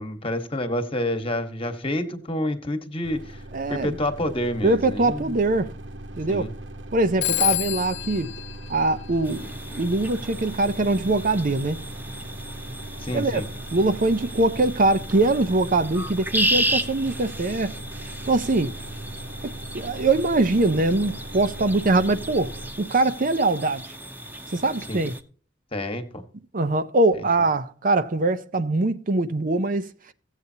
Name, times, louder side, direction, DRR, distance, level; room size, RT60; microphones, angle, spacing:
voice 1, 0.0-3.4 3.7-5.4 6.3-6.5 7.3-7.5 13.0-13.5 24.9-25.0 25.7-26.2, left 1 dB, 30° left, 1.3 m, -28 dB
sound 1, 3.0-22.7, right 1 dB, 80° right, 0.9 m, -39 dB
voice 2, 3.5-4.0 4.6-5.7 6.1-6.5 6.9-8.3 8.7-9.5 9.8-11.8 13.1-13.4 13.7-17.7 18.3-18.8 19.4-23.9 24.5-25.1 26.5-29.9, right 2 dB, 45° right, 0.6 m, -22 dB
Telephone, 7.2-9.7, left 18 dB, 65° left, 0.4 m, -29 dB
sound 2, 9.2-25.2, right 1 dB, 10° right, 0.9 m, -33 dB
16.0 x 8.2 x 2.8 m
head